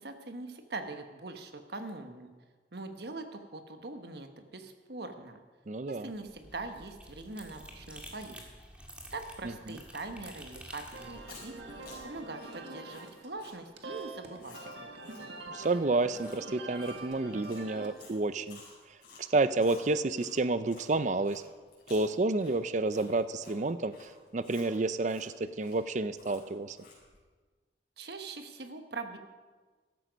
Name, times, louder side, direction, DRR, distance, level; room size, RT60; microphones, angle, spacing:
voice 1, 0.0-2.3 2.7-5.4 5.9-8.4 9.1-14.9 28.0-29.2, right 3 dB, 65° right, 7 dB, 1.3 m, -42 dB
voice 2, 5.7-6.1 9.7-9.8 15.5-18.6 19.2-21.4 21.9-26.8, right 2 dB, 40° right, 13 dB, 0.5 m, -30 dB
sound 1, 6.1-12.3, equal, 5° right, 1.8 m, -50 dB
sound 2, 10.9-18.1, right 2 dB, 90° right, 1.7 m, -45 dB
Chewing mastication, 11.1-20.9 21.2-27.2, left 3 dB, 55° left, 5.1 m, -54 dB
14.5 x 12.5 x 5.2 m, 1.4 s
head